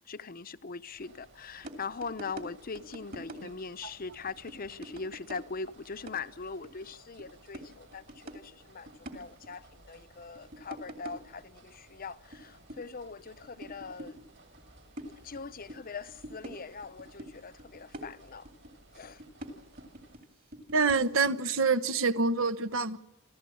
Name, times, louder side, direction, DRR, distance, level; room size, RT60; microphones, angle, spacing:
voice 1, 0.1-14.2 15.2-18.5 18.9-19.2, left 4 dB, 45° left, 0.7 m, -41 dB
sound 1, 0.9-20.2, right 2 dB, 65° right, 5.4 m, -58 dB
sound 2, 1.6-1.8 2.0-2.5 2.8-3.8 4.1-5.7 6.0-6.9 7.2-7.3 7.5-8.4 8.7-9.5 10.2-11.3 11.8-12.4 12.7-14.3 14.6-15.8 16.1-17.3 17.6-18.7 19.0-20.2 20.5-21.3, right 1 dB, 50° right, 2.8 m, -45 dB
voice 2, 20.7-23.0, right 4 dB, 90° right, 1.2 m, -26 dB
28.0 x 15.0 x 8.6 m
head